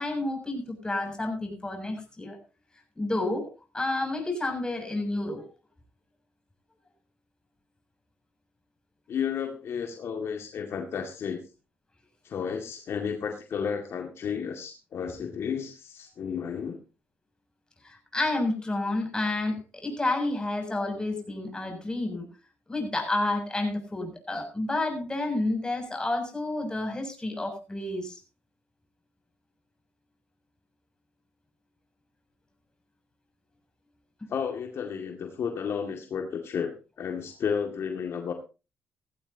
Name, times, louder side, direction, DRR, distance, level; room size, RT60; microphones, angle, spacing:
voice 1, 0.0-2.4 3.0-3.5 3.7-5.4 17.8-22.3 22.7-28.2, left 2 dB, 15° left, 3 dB, 7.2 m, -30 dB
voice 2, 9.1-11.4 12.2-16.8 34.3-38.3, left 7 dB, 65° left, 4 dB, 2.1 m, -32 dB
17.5 x 15.5 x 2.8 m, 0.30 s
cardioid pair, 70°, 5 cm